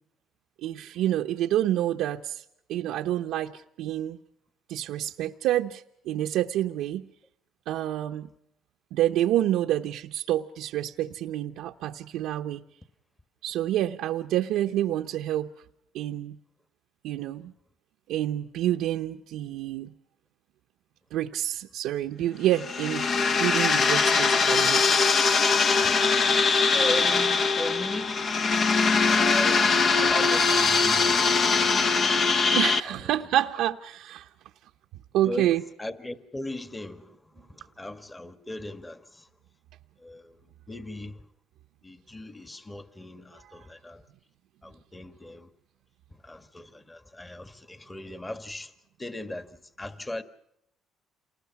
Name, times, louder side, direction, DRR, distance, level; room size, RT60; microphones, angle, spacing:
voice 1, 0.6-2.4 2.7-4.2 4.7-7.1 7.7-8.3 8.9-12.6 13.4-15.5 15.9-16.4 17.0-17.5 18.1-19.9 21.1-23.1 23.4-24.8 31.8-31.9 32.5-34.3 35.1-35.6 43.4-43.5, right 13 dB, 80° right, 0.8 m, -28 dB
sound 1, 22.5-32.8, left 4 dB, 50° left, 1.2 m, -22 dB
voice 2, 26.7-28.2 29.1-32.0 32.8-33.1 35.2-35.5 35.8-39.3 40.0-40.4 40.7-41.2 41.8-44.0 44.6-45.5 46.2-48.7 49.0-50.2, left 2 dB, 15° left, 1.7 m, -37 dB
28.5 x 20.0 x 5.9 m
cardioid pair, 95°, 0 cm